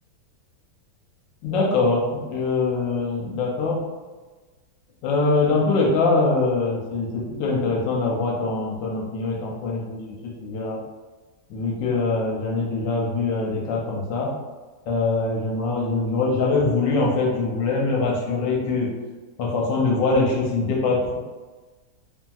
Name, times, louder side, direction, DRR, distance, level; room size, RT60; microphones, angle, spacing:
voice 1, 1.4-3.8 5.0-10.8 11.5-14.3 14.9-18.9 19.4-21.2, left 3 dB, 75° left, -2 dB, 1.2 m, -23 dB
3.1 x 2.6 x 2.3 m, 1.3 s
omnidirectional pair, 2.2 m